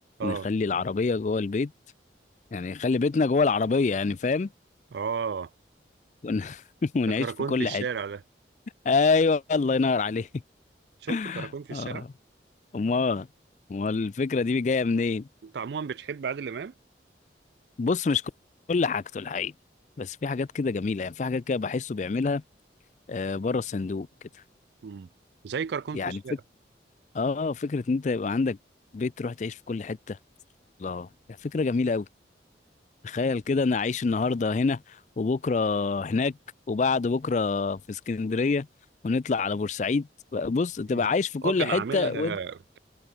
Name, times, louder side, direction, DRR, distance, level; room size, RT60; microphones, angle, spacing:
voice 1, 0.2-1.7 2.5-4.5 6.2-7.8 8.9-10.3 11.1-12.1 12.7-13.3 13.7-15.3 17.8-18.2 18.7-19.5 20.0-22.4 23.1-24.1 25.9-26.2 27.1-28.6 28.9-30.2 30.8-31.1 31.4-32.1 33.0-34.8 35.2-36.4 36.7-38.7 39.0-42.4, left 4 dB, 40° left, 0.4 m, -26 dB
voice 2, 4.9-5.5 7.1-8.2 11.0-12.1 15.4-16.7 24.8-25.1 25.4-26.3 40.9-41.1 41.4-42.8, right 6 dB, 70° right, 0.4 m, -33 dB
head